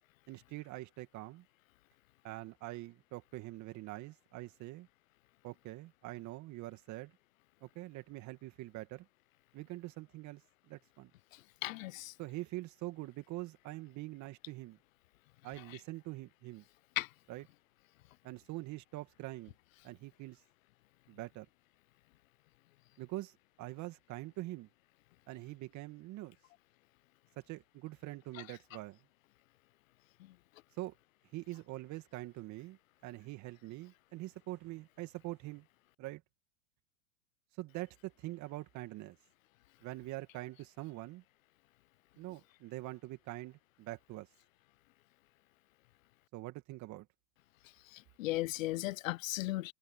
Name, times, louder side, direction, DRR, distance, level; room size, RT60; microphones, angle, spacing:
voice 1, 0.3-1.4 2.2-4.9 5.4-7.1 7.6-9.1 9.5-10.4 10.7-11.1 12.2-14.8 15.4-16.6 17.3-17.5 18.2-19.5 19.8-20.4 21.1-21.5 23.0-24.7 25.3-26.4 27.4-29.0 30.8-30.9 31.3-32.8 33.0-35.7 36.0-36.2 37.6-39.2 39.8-41.2 42.2-44.3 46.3-47.1, right 18 dB, 40° right, 2.4 m, -44 dB
voice 2, 11.6-12.1 17.0-17.1 47.9-49.7, left 17 dB, 65° left, 0.9 m, -36 dB
hypercardioid pair, 105°, 43 cm